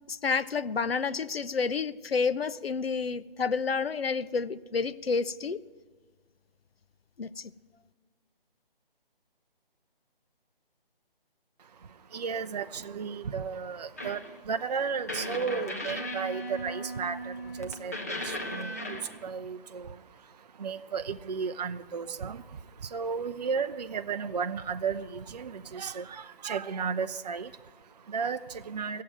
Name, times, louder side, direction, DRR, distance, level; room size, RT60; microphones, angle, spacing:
voice 1, 0.1-5.6 7.2-7.5, left 5 dB, 90° left, 15 dB, 0.6 m, -29 dB
voice 2, 11.6-29.0, right 6 dB, 45° right, 9 dB, 0.4 m, -34 dB
sound 1, 14.0-14.4 15.1-19.3, equal, 15° left, 0.5 m, -36 dB
15.0 x 7.5 x 9.1 m, 1.4 s
figure-of-eight pair, 150°, 29 cm